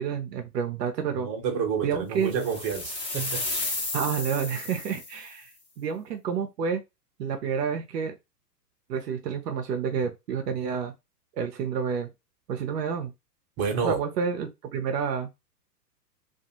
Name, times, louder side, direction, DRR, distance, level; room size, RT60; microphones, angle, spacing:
voice 1, 0.0-1.3 1.8-2.3 3.9-5.5 5.8-6.8 7.2-8.1 8.9-10.9 11.4-12.1 12.5-13.1 13.8-15.3, right 6 dB, 75° right, 0.7 m, -29 dB
voice 2, 1.2-3.4 13.6-14.0, right 6 dB, 35° right, 1.0 m, -29 dB
sound 1, 2.3-5.3, left 2 dB, 10° left, 0.8 m, -33 dB
2.5 x 2.4 x 2.8 m
hypercardioid pair, 110°, 49 cm